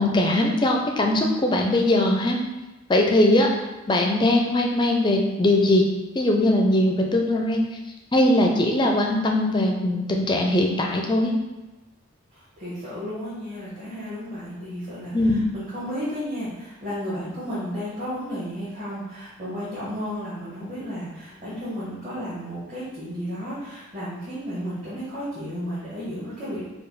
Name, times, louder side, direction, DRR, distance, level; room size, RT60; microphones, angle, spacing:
voice 1, 0.0-2.4 2.9-3.5 3.9-5.9 6.1-7.6 8.1-11.3 15.1-15.5, left 1 dB, 20° left, 1 dB, 0.4 m, -20 dB
voice 2, 12.3-26.6, equal, 35° right, -12 dB, 1.4 m, -33 dB
4.8 x 2.3 x 4.7 m, 1.1 s
head